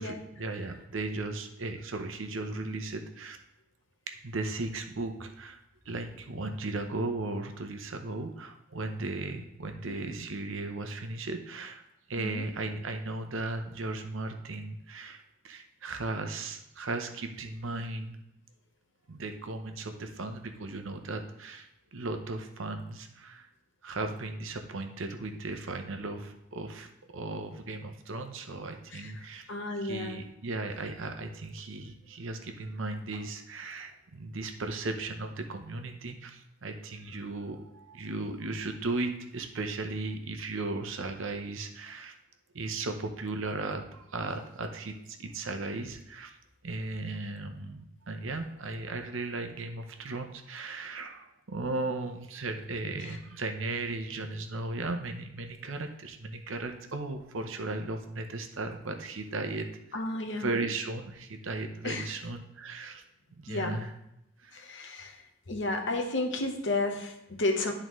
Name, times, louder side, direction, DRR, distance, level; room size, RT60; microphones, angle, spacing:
voice 1, 0.0-3.4 4.1-5.6 5.9-11.8 12.1-18.2 19.1-23.5 23.8-29.5 29.8-42.1 42.5-46.3 46.6-59.7 60.3-63.0 63.4-63.9 64.4-64.6, right 2 dB, 75° right, 6 dB, 0.7 m, -36 dB
voice 2, 9.9-10.2 12.2-12.5 28.9-29.1 29.5-30.2 53.0-53.2 59.9-60.5 61.8-62.0 63.5-63.8 64.5-65.2 65.5-67.7, left 2 dB, 60° left, 3 dB, 0.9 m, -32 dB
11.0 x 3.8 x 3.1 m, 0.83 s
head